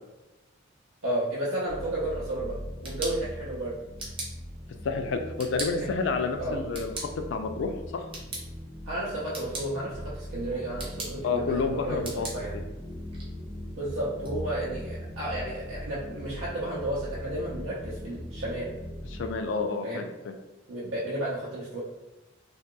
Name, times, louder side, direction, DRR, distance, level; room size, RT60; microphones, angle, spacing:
voice 1, 1.0-2.6 2.8-3.8 5.7-5.9 6.4-6.6 8.9-12.0 12.3-12.5 13.8-18.7 19.8-20.1 20.7-21.8, right 1 dB, 85° right, -7 dB, 0.6 m, -32 dB
sound 1, 1.7-19.3, equal, 55° right, 0.8 m, -40 dB
sound 2, 2.5-14.3, right 2 dB, 25° right, 0.6 m, -43 dB
voice 2, 4.8-8.1 11.2-12.3 12.5-12.7 19.1-20.3, left 4 dB, 60° left, 7 dB, 0.3 m, -30 dB
2.8 x 2.7 x 2.2 m, 1.1 s
head